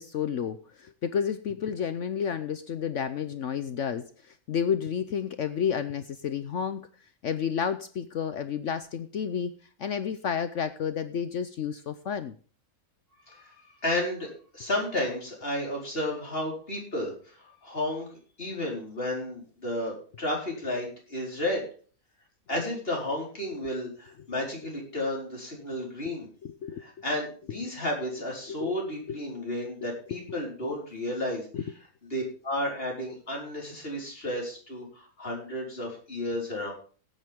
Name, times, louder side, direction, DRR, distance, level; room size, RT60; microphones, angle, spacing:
voice 1, 0.0-6.9 7.2-12.3 26.4-26.9 28.5-28.7 29.1-29.2 30.3-30.7 31.5-31.6, left 7 dB, 60° left, 11 dB, 1.0 m, -31 dB
voice 2, 13.3-18.1 18.4-21.6 22.5-26.3 26.8-31.5 32.1-36.7, left 1 dB, 40° left, -2 dB, 4.9 m, -32 dB
17.5 x 9.1 x 3.6 m, 0.40 s
omnidirectional pair, 1.6 m